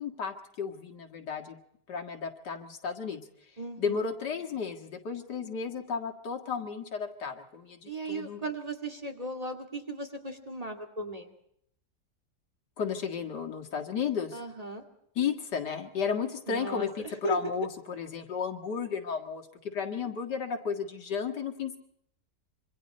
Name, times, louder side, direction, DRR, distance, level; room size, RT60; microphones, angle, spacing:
voice 1, 0.0-1.6 1.9-3.2 3.8-8.4 12.8-14.4 15.2-21.8, left 6 dB, 80° left, 3 dB, 2.5 m, -33 dB
voice 2, 3.6-4.1 7.9-11.3 14.3-14.8 16.5-17.4, right 2 dB, 20° right, 4 dB, 2.3 m, -36 dB
26.5 x 25.0 x 4.3 m, 0.71 s
omnidirectional pair, 1.8 m